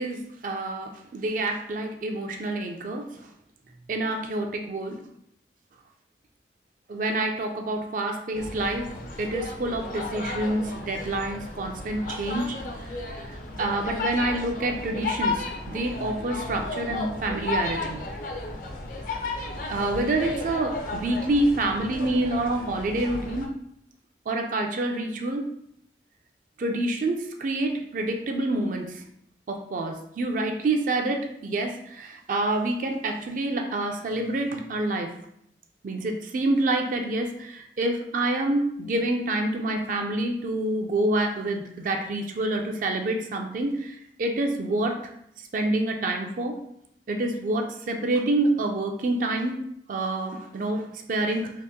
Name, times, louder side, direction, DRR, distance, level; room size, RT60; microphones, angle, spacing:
voice 1, 0.0-3.3 3.9-5.0 6.9-12.6 13.2-18.0 19.7-23.5 24.3-25.5 26.6-29.0 29.5-35.1 35.8-45.1 45.4-46.6 47.1-49.6 49.9-51.5, right 2 dB, 50° right, 3 dB, 0.4 m, -27 dB
sound 1, 8.3-23.5, left 2 dB, 50° left, 0.5 m, -34 dB
2.8 x 2.5 x 3.5 m, 0.72 s
head